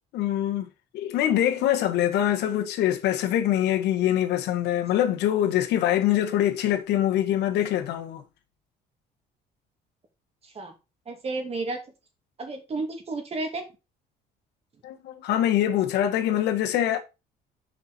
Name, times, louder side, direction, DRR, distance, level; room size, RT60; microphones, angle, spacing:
voice 1, 0.1-0.7 0.9-8.2 14.8-17.0, left 11 dB, 80° left, 1.3 m, -24 dB
voice 2, 10.4-10.7 11.1-11.8 12.4-13.6, right 3 dB, 35° right, 2.4 m, -32 dB
6.0 x 5.6 x 4.0 m
cardioid pair, 110°, 17 cm